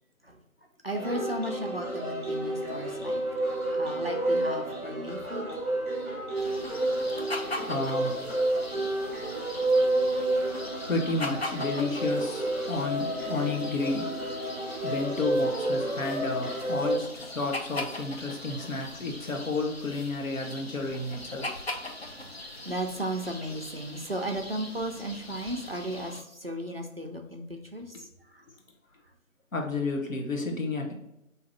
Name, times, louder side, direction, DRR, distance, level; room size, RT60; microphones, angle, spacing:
voice 1, 0.8-5.7 6.9-7.0 10.8-10.9 18.4-18.7 21.4-21.5 22.6-28.4, right 1 dB, 45° right, 2 dB, 0.5 m, -36 dB
sound 1, 0.9-17.0, right 1 dB, ahead, 0.8 m, -30 dB
sound 2, 6.3-26.2, left 2 dB, 50° left, 0.5 m, -41 dB
voice 2, 7.2-8.4 10.3-10.5 10.9-14.3 14.8-21.6 29.5-30.9, left 3 dB, 70° left, 1 dB, 1.0 m, -32 dB
4.0 x 2.8 x 3.8 m, 0.85 s
figure-of-eight pair, 165°, 42 cm